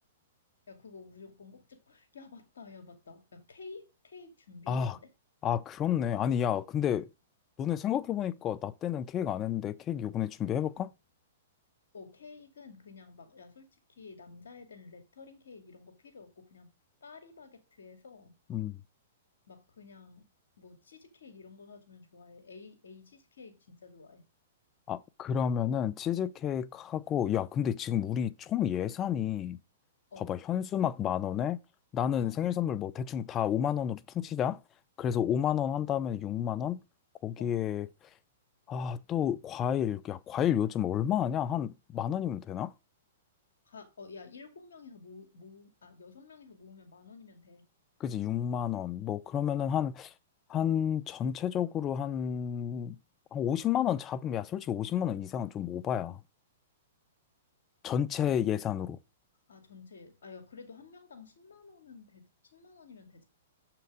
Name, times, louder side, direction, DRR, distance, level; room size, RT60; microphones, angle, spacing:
voice 1, 0.7-5.1 11.9-16.7 17.0-18.4 19.5-20.2 20.6-24.3 30.1-30.3 32.2-32.4 35.1-35.3 35.7-35.9 37.4-37.6 43.7-47.7 59.5-63.2, left 4 dB, 80° left, 2.2 m, -51 dB
voice 2, 5.4-7.1 7.6-10.9 18.5-18.8 24.9-29.6 30.2-31.6 31.9-34.6 35.0-36.8 37.2-37.9 38.7-42.7 48.0-50.1 50.5-53.0 53.3-56.2 57.8-59.0, left 9 dB, 25° left, 0.6 m, -31 dB
7.2 x 5.9 x 4.9 m
hypercardioid pair, 125°, 0 cm